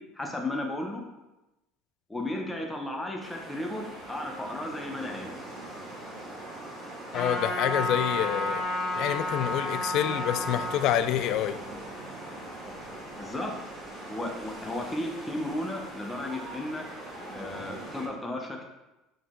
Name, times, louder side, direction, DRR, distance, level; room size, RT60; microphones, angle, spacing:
voice 1, 0.1-1.0 2.1-5.3 13.2-13.6 14.1-16.8 17.3-18.6, left 1 dB, 10° left, 1 dB, 0.8 m, -34 dB
sound 1, 3.2-18.1, right 1 dB, 25° right, 1.4 m, -42 dB
voice 2, 7.1-8.7 8.9-11.6, left 11 dB, 50° left, 11 dB, 0.3 m, -27 dB
Trumpet, 7.1-10.8, left 2 dB, 30° left, 1.7 m, -31 dB
6.8 x 3.8 x 3.7 m, 0.99 s
cardioid pair, 155°, 0 cm